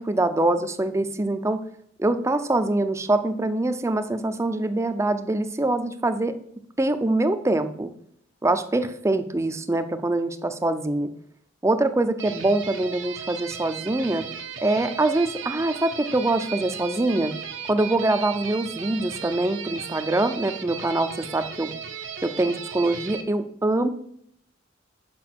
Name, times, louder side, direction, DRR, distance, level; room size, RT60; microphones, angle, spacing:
voice 1, 0.0-1.6 2.0-6.3 6.8-7.9 8.4-11.1 11.6-14.2 14.6-17.3 17.7-21.8 22.2-23.9, right 2 dB, 15° right, 10 dB, 0.5 m, -24 dB
sound 1, 12.2-23.2, right 7 dB, 70° right, 0.8 m, -36 dB
5.9 x 5.5 x 6.0 m, 0.69 s
head